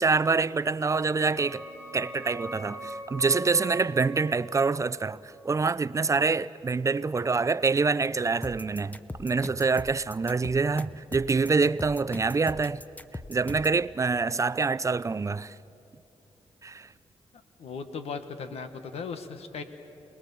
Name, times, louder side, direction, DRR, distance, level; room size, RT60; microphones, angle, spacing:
voice 1, 0.0-1.6 1.9-12.8 13.3-15.6 16.6-16.9, right 4 dB, 30° right, 0.5 m, -26 dB
sound 1, 0.8-6.2, right 1 dB, 30° left, 8.0 m, -42 dB
sound 2, 8.4-13.8, left 2 dB, 15° left, 0.8 m, -39 dB
voice 2, 17.6-19.6, left 5 dB, 80° left, 1.5 m, -37 dB
27.0 x 20.0 x 7.0 m
cardioid pair, 75°, 10 cm